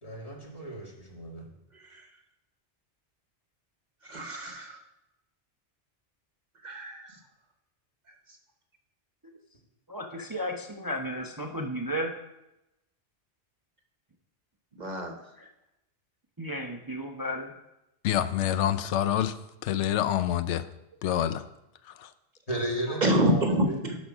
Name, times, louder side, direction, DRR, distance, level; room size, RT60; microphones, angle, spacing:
voice 1, 0.0-1.4 22.5-23.8, right 1 dB, 30° left, -2 dB, 1.8 m, -34 dB
voice 2, 4.1-4.8 6.6-7.1 14.8-15.1 23.0-24.0, right 1 dB, 40° right, 4 dB, 1.1 m, -27 dB
voice 3, 9.9-12.1 15.4-15.5 16.4-17.5 22.9-23.0, equal, 25° right, 2 dB, 0.6 m, -34 dB
voice 4, 18.0-19.3 19.6-20.6 21.0-21.4 22.0-22.1, left 11 dB, 90° left, 12 dB, 0.9 m, -26 dB
11.0 x 4.2 x 6.1 m, 0.91 s
omnidirectional pair, 1.2 m